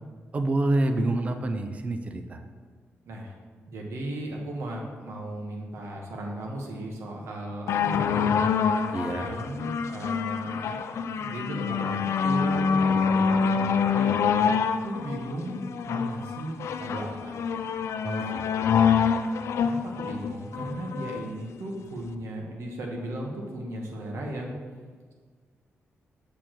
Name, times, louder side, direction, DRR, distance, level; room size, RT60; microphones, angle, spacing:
voice 1, 0.3-2.4 8.9-9.3 18.0-19.1, right 2 dB, 30° right, 7 dB, 0.4 m, -28 dB
voice 2, 3.7-8.5 9.2-14.2 14.8-17.4 18.2-18.4 19.6-24.5, right 1 dB, 75° right, 0 dB, 1.2 m, -36 dB
sound 1, 7.7-21.2 22.0-22.1, left 6 dB, 70° left, 0.3 m, -26 dB
6.9 x 6.7 x 3.0 m, 1.6 s
wide cardioid pair, 175°, 5 cm